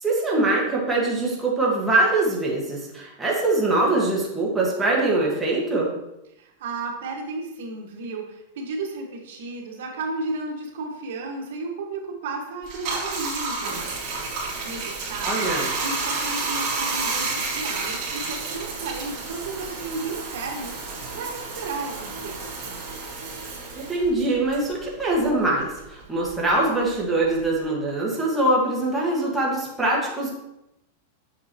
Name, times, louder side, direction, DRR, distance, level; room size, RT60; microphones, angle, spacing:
voice 1, 0.0-5.9 15.2-15.7 23.7-30.3, right 2 dB, 5° right, -4 dB, 1.5 m, -23 dB
voice 2, 6.4-13.9 14.6-15.5 15.8-22.7, right 3 dB, 70° right, 1 dB, 1.5 m, -33 dB
Bathtub (filling or washing), 12.6-25.5 25.8-27.6, right 3 dB, 35° right, 2.3 m, -31 dB
7.6 x 6.2 x 2.9 m, 0.89 s
supercardioid pair, 155°, 0 cm